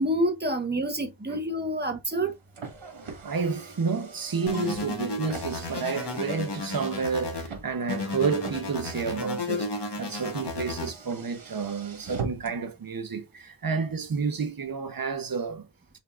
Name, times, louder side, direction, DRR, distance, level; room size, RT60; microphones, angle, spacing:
voice 1, 0.0-2.3, right 1 dB, 20° right, 1.2 m, -27 dB
Car, 2.1-12.7, right 4 dB, 70° right, 1.6 m, -43 dB
voice 2, 3.2-15.6, right 5 dB, 45° right, 0.9 m, -30 dB
sound 1, 4.5-7.5 7.9-10.9, left 3 dB, 55° left, 1.4 m, -33 dB
Piano, 4.5-6.0, left 3 dB, 20° left, 2.8 m, -52 dB
5.4 x 3.8 x 2.5 m
wide cardioid pair, 95°, 48 cm